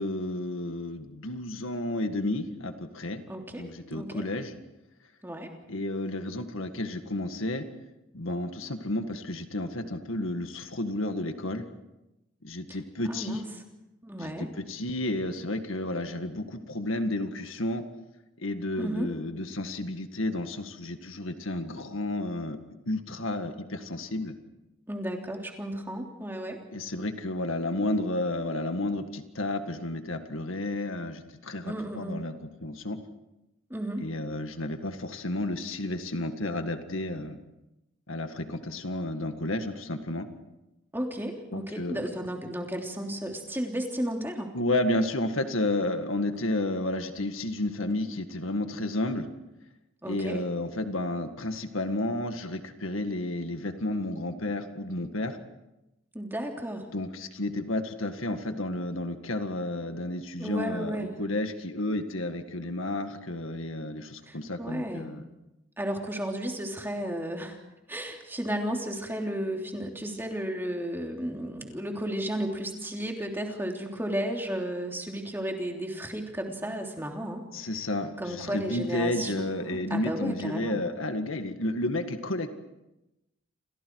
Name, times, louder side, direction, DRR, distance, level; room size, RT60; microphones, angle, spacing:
voice 1, 0.0-3.2 3.6-4.6 5.7-7.7 8.1-11.7 12.4-13.4 14.2-17.8 18.4-22.6 22.9-24.3 26.7-32.3 32.6-33.0 34.0-37.4 38.1-40.3 41.5-42.1 44.5-49.3 50.0-55.4 56.9-65.2 77.5-82.5, left 1 dB, 75° left, 7 dB, 1.9 m, -31 dB
voice 2, 3.3-3.6 3.9-4.2 5.2-5.5 12.7-12.8 13.1-13.5 14.0-14.5 18.8-19.1 24.9-26.6 31.6-32.2 33.7-34.0 40.9-44.5 50.0-50.4 56.1-56.9 60.4-61.1 64.3-65.1 65.8-67.6 67.9-77.5 78.2-80.8, right 1 dB, 10° right, 1 dB, 3.2 m, -33 dB
29.5 x 26.5 x 4.8 m, 0.95 s
head